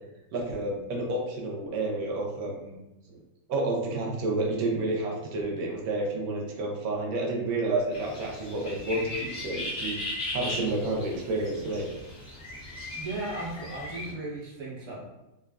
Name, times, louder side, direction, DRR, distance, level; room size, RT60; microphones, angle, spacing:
voice 1, 0.3-2.7 3.1-3.2 3.5-10.0 10.3-11.9, right 2 dB, 80° right, -1 dB, 1.1 m, -30 dB
sound 1, 7.9-14.1, left 1 dB, 50° left, 0.6 m, -37 dB
voice 2, 12.9-15.0, right 2 dB, 35° right, -6 dB, 0.5 m, -36 dB
2.9 x 2.3 x 2.2 m, 0.95 s
omnidirectional pair, 1.6 m